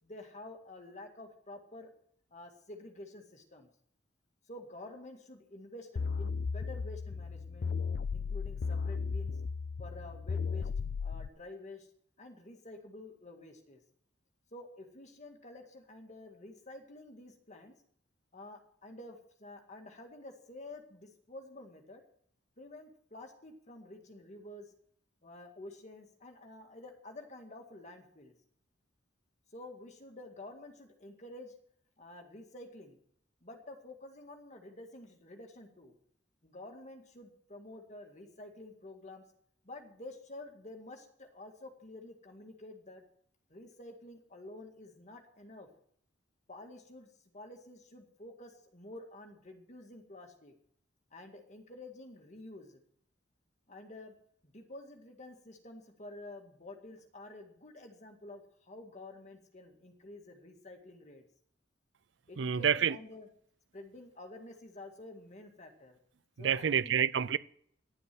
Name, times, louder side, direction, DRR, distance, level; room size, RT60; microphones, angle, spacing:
voice 1, 0.0-1.9 2.3-3.7 4.5-7.7 8.1-9.3 9.8-10.7 11.0-11.9 12.2-13.8 14.5-17.7 18.3-22.0 22.6-24.7 25.2-28.3 29.5-31.5 32.0-33.0 33.4-35.9 36.4-39.2 39.6-43.0 43.5-45.7 46.5-47.1 47.3-50.5 51.1-52.8 53.7-54.1 54.4-61.3 62.3-63.3 63.7-66.0 66.4-67.0, left 2 dB, 40° left, 2.0 m, -50 dB
sound 1, 6.0-11.3, left 5 dB, 55° left, 0.4 m, -35 dB
voice 2, 62.4-63.0 66.4-67.4, right 8 dB, 70° right, 0.5 m, -28 dB
11.5 x 7.8 x 7.7 m
head